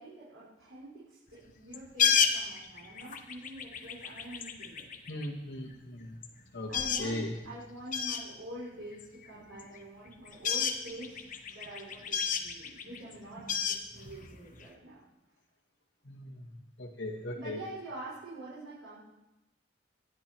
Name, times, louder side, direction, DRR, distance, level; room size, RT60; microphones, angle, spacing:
voice 1, 0.0-4.9 6.7-11.2 11.5-15.0 17.4-19.0, right 1 dB, 90° right, -9 dB, 5.7 m, -46 dB
sound 1, 1.7-5.3 5.9-6.0 6.2-6.3 6.5-7.1 7.4-7.5 7.9-8.3 8.9-9.8 10.1-14.7, left 7 dB, 40° left, 1.1 m, -31 dB
voice 2, 5.1-6.1 6.5-6.7 7.0-7.3 16.1-16.4 16.8-17.6, left 1 dB, 65° left, -2 dB, 2.0 m, -38 dB
26.0 x 10.5 x 4.6 m, 0.98 s
head